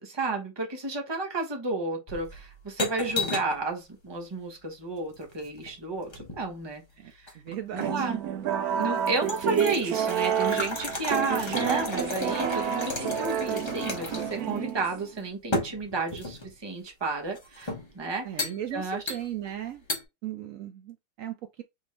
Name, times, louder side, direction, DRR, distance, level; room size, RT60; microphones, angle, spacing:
voice 1, 0.0-7.4 7.7-8.2 8.8-19.0, right 3 dB, 20° right, 0.7 m, -32 dB
sound 1, 2.1-3.6 5.1-6.5 7.3-7.9 8.4-8.5 8.8-14.4 14.7-14.8 15.5-16.5 17.3-17.9 18.4-18.6 19.1-19.5 19.9-20.0, left 2 dB, 20° left, 0.9 m, -34 dB
voice 2, 7.4-8.1 18.2-19.8 20.2-21.6, right 11 dB, 90° right, 0.7 m, -37 dB
sound 2, 7.8-15.2, right 9 dB, 65° right, 0.9 m, -30 dB
Mechanisms, 10.1-15.3, left 8 dB, 75° left, 0.7 m, -46 dB
3.7 x 3.5 x 3.2 m
omnidirectional pair, 2.0 m